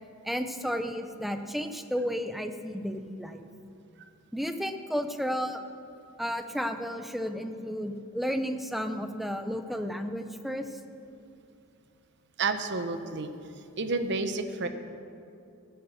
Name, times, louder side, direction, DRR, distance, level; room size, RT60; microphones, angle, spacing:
voice 1, 0.2-3.5 4.3-5.6 6.2-10.6, equal, ahead, 7 dB, 0.6 m, -32 dB
voice 2, 12.4-13.3 13.8-14.7, right 3 dB, 55° right, 9 dB, 0.9 m, -30 dB
14.5 x 10.0 x 6.6 m, 2.6 s
head